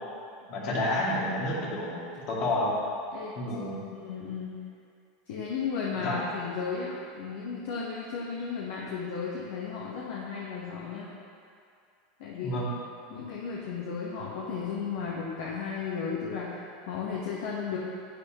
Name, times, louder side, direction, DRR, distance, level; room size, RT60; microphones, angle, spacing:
voice 1, 0.5-2.8 3.4-3.8 6.0-6.2 12.3-12.7, left 1 dB, 50° left, -4 dB, 2.3 m, -30 dB
voice 2, 3.9-4.5 5.3-11.1 12.2-12.6 13.1-17.8, left 5 dB, 65° left, -4 dB, 1.1 m, -34 dB
10.0 x 8.6 x 3.0 m, 2.4 s
hypercardioid pair, 85°, 0 cm